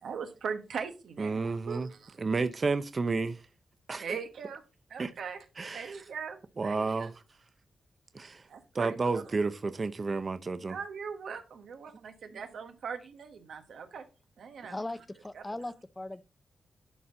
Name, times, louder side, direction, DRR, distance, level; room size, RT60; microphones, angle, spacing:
voice 1, 0.0-2.2 4.0-4.6 4.9-5.4 5.7-7.1 8.5-9.3 10.7-14.0 14.4-14.8 15.3-15.4, right 6 dB, 85° right, 1.3 m, -40 dB
voice 2, 1.2-1.9 2.2-3.4 3.9-4.0 5.0-5.1 5.6-6.0 6.6-7.1 8.1-8.4 8.7-10.8 12.3-12.4, right 4 dB, 40° right, 0.5 m, -31 dB
voice 3, 14.7-16.2, left 2 dB, 15° left, 0.5 m, -39 dB
11.0 x 4.2 x 3.7 m
wide cardioid pair, 110°, 0 cm